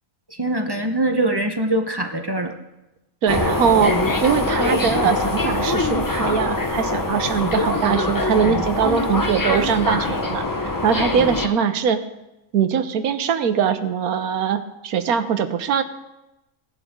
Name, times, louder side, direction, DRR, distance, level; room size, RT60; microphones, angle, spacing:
voice 1, 0.3-2.5, right 1 dB, 20° right, 4 dB, 0.8 m, -23 dB
voice 2, 3.2-12.0 12.5-15.8, right 7 dB, 80° right, 10 dB, 1.3 m, -21 dB
sound 1, 3.3-11.5, left 2 dB, 20° left, 0.5 m, -23 dB
17.5 x 11.0 x 3.7 m, 0.96 s
omnidirectional pair, 1.5 m